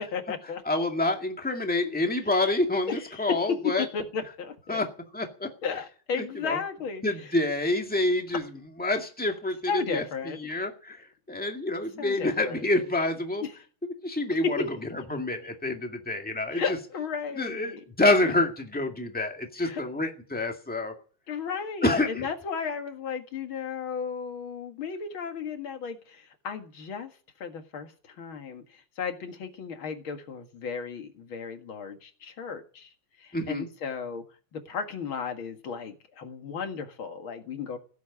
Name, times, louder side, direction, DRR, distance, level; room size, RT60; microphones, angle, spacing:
voice 1, 0.0-0.6 1.8-2.0 2.9-4.9 5.6-7.3 9.7-10.4 12.0-12.6 13.4-13.5 14.4-14.7 16.5-17.8 18.2-18.3 19.6-19.8 20.9-21.0 21.3-27.1 27.4-32.9 33.2-34.2 34.5-37.8, left 6 dB, 75° left, 6 dB, 2.6 m, -34 dB
voice 2, 0.7-3.9 4.7-4.9 5.1-5.5 6.2-6.6 7.0-8.4 8.8-10.0 10.4-11.0 11.3-13.4 14.0-14.6 15.1-16.6 17.4-20.9 21.8-22.3 33.3-33.7, left 2 dB, 5° left, 3 dB, 1.9 m, -27 dB
16.5 x 8.3 x 9.8 m, 0.41 s
omnidirectional pair, 2.3 m